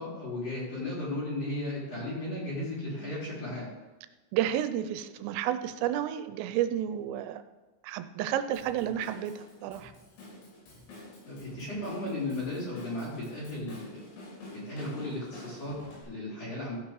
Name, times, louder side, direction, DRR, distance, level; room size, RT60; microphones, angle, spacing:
voice 1, 0.0-3.7 11.3-14.0 14.5-16.8, left 1 dB, 35° left, -8 dB, 4.5 m, -35 dB
voice 2, 4.3-7.4 7.8-9.9, right 11 dB, 85° right, 10 dB, 3.2 m, -31 dB
Drum kit / Drum, 8.5-16.0, left 2 dB, 65° left, 6.7 m, -49 dB
15.5 x 6.2 x 4.9 m, 1.2 s
omnidirectional pair, 5.8 m